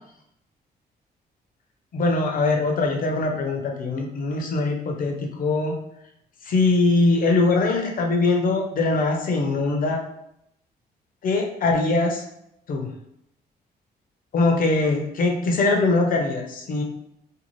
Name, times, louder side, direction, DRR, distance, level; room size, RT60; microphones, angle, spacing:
voice 1, 1.9-5.7 6.4-10.0 11.2-12.2 12.7-12.9 14.3-16.8, left 3 dB, 55° left, 2 dB, 0.6 m, -22 dB
2.6 x 2.3 x 3.0 m, 0.78 s
cardioid pair, 115°, 17 cm